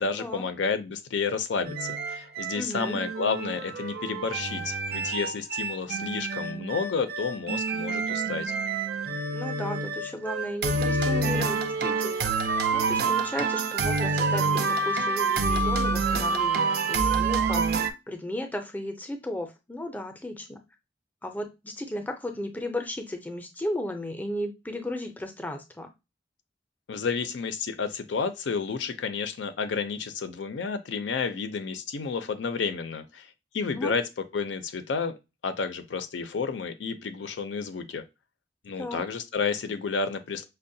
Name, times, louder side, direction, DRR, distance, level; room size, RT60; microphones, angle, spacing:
voice 1, 0.0-8.5 26.9-34.0 34.3-35.1 35.4-38.0 38.6-40.5, left 5 dB, 80° left, 0.5 m, -31 dB
sound 1, 1.6-17.9, right 4 dB, 55° right, 0.4 m, -27 dB
voice 2, 2.5-3.0 9.3-20.6 21.2-25.9 33.7-33.9 38.8-39.0, left 1 dB, 10° left, 0.5 m, -35 dB
5.4 x 2.1 x 2.6 m
head